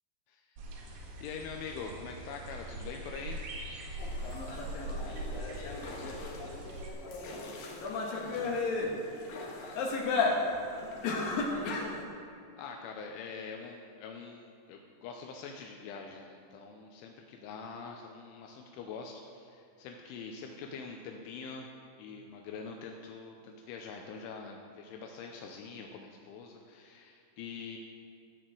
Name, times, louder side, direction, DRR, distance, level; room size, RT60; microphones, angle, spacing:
sound 1, 0.6-6.9, right 1 dB, 70° right, 3.8 m, -41 dB
voice 1, 1.2-3.5 12.6-21.7 22.0-27.8, left 5 dB, 80° left, 2 dB, 3.1 m, -44 dB
sound 2, 4.0-12.0, left 4 dB, 65° left, 2.4 m, -34 dB
voice 2, 4.4-7.6 8.1-11.9, left 1 dB, 40° left, -5 dB, 3.3 m, -51 dB
14.0 x 6.4 x 7.7 m, 2.5 s
omnidirectional pair, 5.7 m